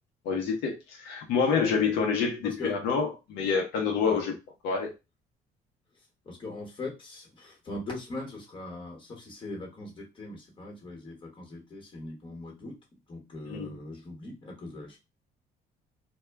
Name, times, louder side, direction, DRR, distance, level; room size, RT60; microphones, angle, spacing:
voice 1, 0.2-4.3 4.6-4.9 13.5-13.7, left 5 dB, 90° left, 0.7 m, -27 dB
voice 2, 2.4-2.7 4.0-4.2 6.2-12.7 13.1-15.0, left 2 dB, 30° left, 1.1 m, -40 dB
2.1 x 2.1 x 3.3 m
cardioid pair, 110°, 17 cm